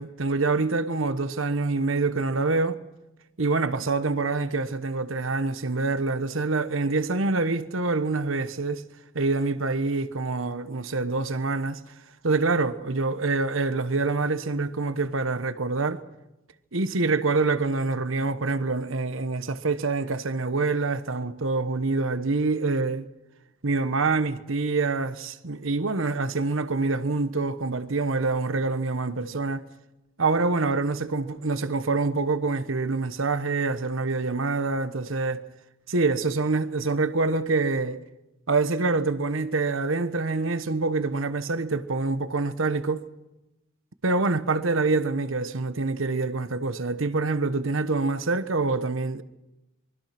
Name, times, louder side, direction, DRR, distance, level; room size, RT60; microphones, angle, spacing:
voice 1, 0.0-2.8 3.4-8.8 9.1-11.8 12.2-16.0 16.7-23.1 23.6-29.6 30.2-35.4 35.9-38.0 38.5-43.0 44.0-49.2, right 3 dB, 75° right, 1.2 m, -26 dB
24.0 x 24.0 x 6.0 m
head